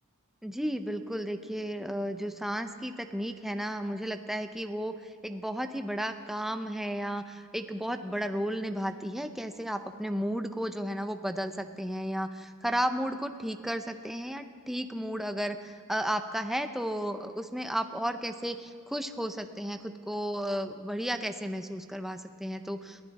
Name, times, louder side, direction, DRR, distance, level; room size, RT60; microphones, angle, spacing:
voice 1, 0.4-4.9 5.2-23.0, equal, ahead, 7 dB, 0.6 m, -33 dB
22.0 x 15.5 x 4.1 m, 2.2 s
head